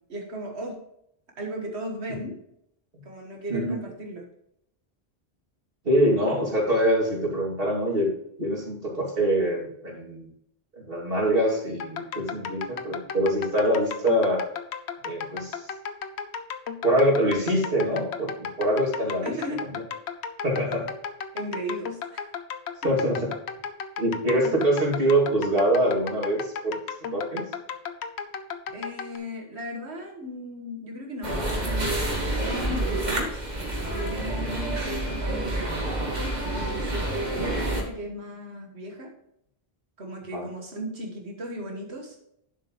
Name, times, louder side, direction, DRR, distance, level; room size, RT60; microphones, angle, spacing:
voice 1, 0.1-0.8 1.4-2.4 3.0-4.3 19.2-19.6 21.3-22.2 22.8-23.1 28.7-33.4 33.9-35.7 36.5-39.1 40.0-42.2, equal, 85° right, 1 dB, 1.8 m, -36 dB
voice 2, 5.8-8.1 8.4-10.3 10.7-14.5 15.0-15.7 16.8-19.3 19.7-19.8 20.4-20.9 22.8-23.3 24.0-26.8 27.1-27.4 34.4-34.6 40.3-40.4, right 1 dB, 60° right, -2 dB, 2.8 m, -24 dB
sound 1, 11.8-29.2, left 6 dB, 90° left, 1.1 m, -35 dB
sound 2, 31.2-37.8, right 1 dB, 40° right, 2.1 m, -28 dB
10.5 x 7.5 x 3.1 m, 0.75 s
omnidirectional pair, 1.1 m